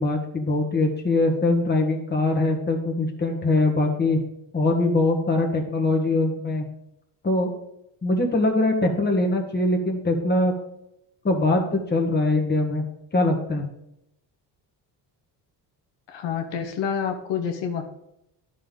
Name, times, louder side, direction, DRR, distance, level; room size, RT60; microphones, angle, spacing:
voice 1, 0.0-4.2 4.5-6.6 7.2-7.5 8.0-10.5 11.2-12.8 13.1-13.6, left 2 dB, 25° left, 2 dB, 1.5 m, -22 dB
voice 2, 16.1-17.8, left 7 dB, 75° left, 5 dB, 1.1 m, -28 dB
11.0 x 5.5 x 3.9 m, 0.81 s
cardioid pair, 110°, 43 cm